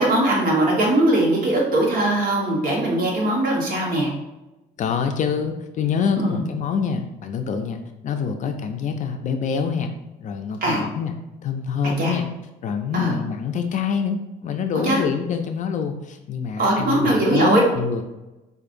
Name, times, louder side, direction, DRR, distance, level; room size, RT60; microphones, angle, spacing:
voice 1, 0.0-4.1 6.2-6.4 10.6-10.8 12.0-12.1 12.9-13.1 14.8-15.0 16.6-17.6, right 1 dB, 60° right, -2 dB, 1.2 m, -20 dB
voice 2, 4.8-9.9 10.2-11.1 11.4-12.3 12.6-18.0, left 6 dB, 50° left, 6 dB, 0.4 m, -25 dB
4.8 x 2.5 x 2.5 m, 0.99 s
cardioid pair, 110°, 17 cm